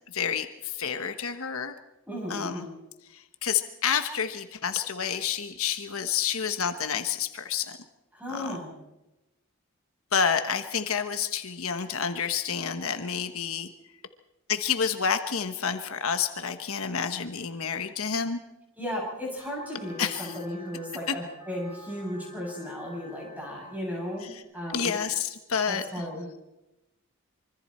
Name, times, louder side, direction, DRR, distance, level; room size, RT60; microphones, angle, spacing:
voice 1, 0.1-1.7 2.3-2.6 3.1-7.8 8.3-8.6 10.1-13.7 14.5-18.4 20.0-20.4 21.1-21.2 24.2-24.4 24.7-26.1, left 7 dB, 70° left, 8 dB, 1.2 m, -29 dB
voice 2, 2.1-2.7 8.1-8.7 18.8-24.9 25.7-26.3, left 1 dB, 5° right, -2 dB, 7.6 m, -35 dB
sound 1, 19.4-24.4, left 1 dB, 35° left, 5.4 m, -51 dB
25.5 x 24.5 x 4.4 m, 0.97 s
head